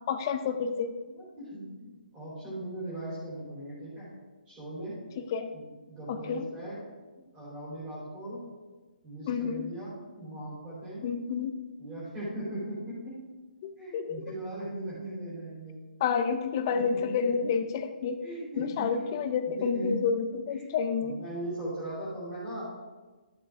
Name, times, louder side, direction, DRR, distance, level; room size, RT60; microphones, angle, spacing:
voice 1, 0.1-0.9 5.2-5.5 6.1-6.5 9.3-9.7 11.0-11.6 13.6-14.3 16.0-18.2 18.6-21.2, left 6 dB, 20° left, 8 dB, 0.5 m, -30 dB
voice 2, 1.1-4.1 4.5-5.0 5.5-6.8 7.3-8.5 9.0-11.0 11.8-13.2 13.8-15.8 16.7-17.3 18.2-19.1 19.6-20.0 20.5-20.7 21.0-22.7, right 1 dB, 10° right, -8 dB, 3.6 m, -39 dB
13.0 x 7.1 x 3.6 m, 1.3 s
hypercardioid pair, 170°, 5 cm